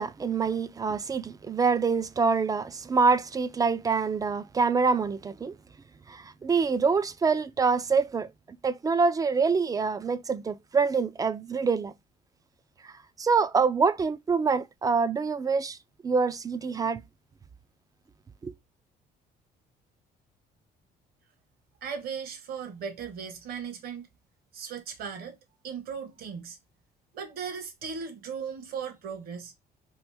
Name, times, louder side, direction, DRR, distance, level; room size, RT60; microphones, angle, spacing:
voice 1, 0.0-5.5 6.1-8.3 8.6-11.9 12.8-12.9 13.2-15.8 16.0-17.0 18.4-18.5, right 5 dB, 20° right, 0.3 m, -25 dB
voice 2, 21.8-24.1 24.5-25.4 25.6-26.6 27.1-29.5, right 6 dB, 65° right, 1.0 m, -37 dB
3.0 x 2.5 x 3.3 m
cardioid pair, 110°, 17 cm